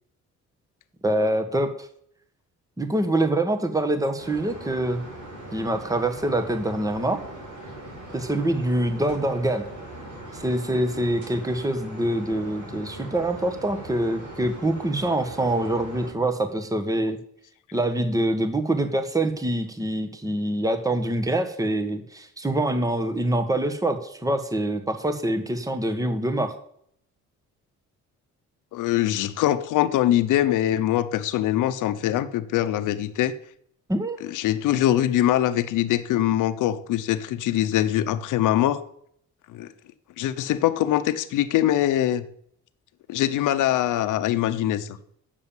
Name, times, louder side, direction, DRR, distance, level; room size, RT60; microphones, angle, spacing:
voice 1, 1.0-1.9 2.8-5.1 5.5-7.2 8.1-9.6 10.3-17.2 17.7-26.5 33.9-34.2, right 1 dB, 10° right, 8 dB, 1.4 m, -25 dB
sound 1, 4.2-16.1, right 1 dB, 75° right, 5.6 m, -40 dB
voice 2, 28.7-33.3 34.3-38.8 39.5-39.7 40.2-42.2 43.1-45.0, left 12 dB, 90° left, 11 dB, 0.9 m, -23 dB
9.7 x 7.2 x 7.3 m, 0.64 s
cardioid pair, 90°, 30 cm